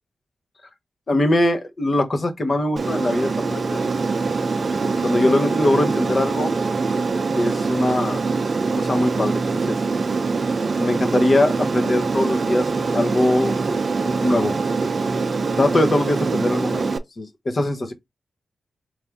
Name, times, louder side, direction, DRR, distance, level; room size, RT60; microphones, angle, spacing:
voice 1, 1.1-3.8 5.0-6.5 7.4-8.2 8.7-9.8 10.8-12.7 12.9-13.5 14.0-14.6 15.6-16.9 17.2-17.9, left 1 dB, 40° left, 1.0 m, -21 dB
Aircraft, 2.8-17.0, right 4 dB, 50° right, 0.5 m, -23 dB
4.8 x 2.6 x 3.4 m
cardioid pair, 85°, 0 cm